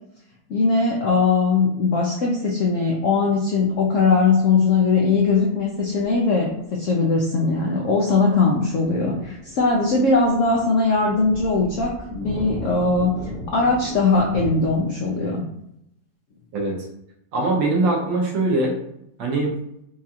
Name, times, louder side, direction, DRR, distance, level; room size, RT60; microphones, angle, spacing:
voice 1, 0.5-13.2 13.5-15.4, left 4 dB, 80° left, -1 dB, 0.7 m, -20 dB
sound 1, 6.0-6.1 8.0-14.8, equal, 15° right, 0.3 m, -37 dB
voice 2, 16.5-16.8 17.3-18.7 19.2-19.5, right 2 dB, 85° right, -1 dB, 1.6 m, -22 dB
4.6 x 2.4 x 2.8 m, 0.79 s
omnidirectional pair, 2.0 m